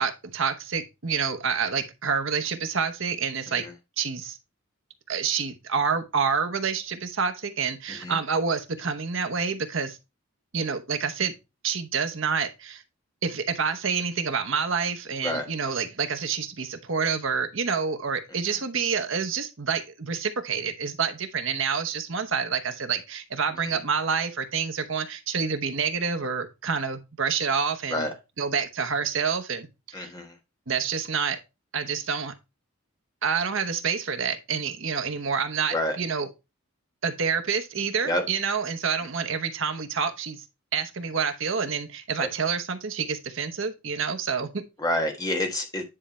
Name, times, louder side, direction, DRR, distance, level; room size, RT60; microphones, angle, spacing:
voice 1, 0.0-3.7 4.0-4.4 5.1-10.0 10.5-11.3 11.6-12.8 13.2-28.1 28.4-30.1 30.7-31.4 31.7-32.3 33.2-36.3 37.0-40.4 40.7-44.6, right 6 dB, 60° right, 0.9 m, -28 dB
voice 2, 29.9-30.3 35.7-36.0 38.0-38.2 44.8-45.8, left 1 dB, 15° left, 1.3 m, -28 dB
9.9 x 3.4 x 4.2 m
head